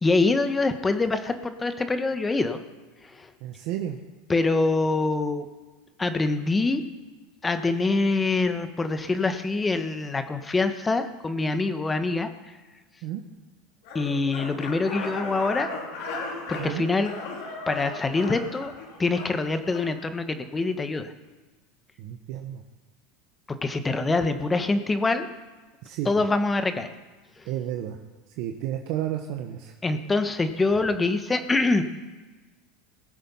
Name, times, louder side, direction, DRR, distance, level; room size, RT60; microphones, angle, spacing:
voice 1, 0.0-2.6 3.0-3.3 4.3-5.5 6.0-6.8 7.4-12.5 13.9-15.7 16.5-17.1 17.7-18.7 19.0-21.1 23.6-25.3 26.0-26.9 27.4-27.5 29.8-31.8, left 3 dB, 15° left, 9 dB, 1.3 m, -25 dB
voice 2, 3.4-4.0 13.0-13.2 16.6-16.8 22.0-22.6 25.8-26.1 27.4-28.0 28.4-29.7, right 11 dB, 65° right, 4 dB, 1.1 m, -31 dB
sound 1, 13.8-19.9, left 3 dB, 70° left, 3.7 m, -36 dB
20.0 x 7.5 x 5.7 m, 1.3 s
supercardioid pair, 105°, 0 cm